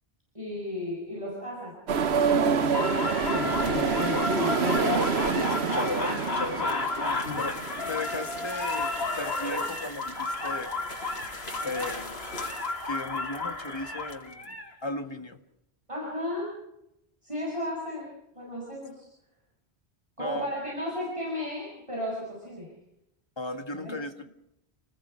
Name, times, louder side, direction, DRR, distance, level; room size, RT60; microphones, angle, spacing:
voice 1, 0.3-1.8 2.2-4.7 15.9-16.6 17.2-19.0 20.2-22.7 23.7-24.0, left 1 dB, 30° right, -4 dB, 7.3 m, -35 dB
sound 1, 1.9-8.5, right 6 dB, 90° right, 1.3 m, -27 dB
sound 2, 2.7-14.7, left 3 dB, 75° left, 2.8 m, -32 dB
sound 3, 2.9-14.5, left 1 dB, 90° left, 5.5 m, -45 dB
voice 2, 5.3-7.6 7.9-10.7 11.6-12.2 12.8-15.4 20.2-20.5 23.4-24.3, left 2 dB, 25° left, 7 dB, 1.8 m, -36 dB
29.5 x 20.0 x 5.8 m, 0.81 s
omnidirectional pair, 1.1 m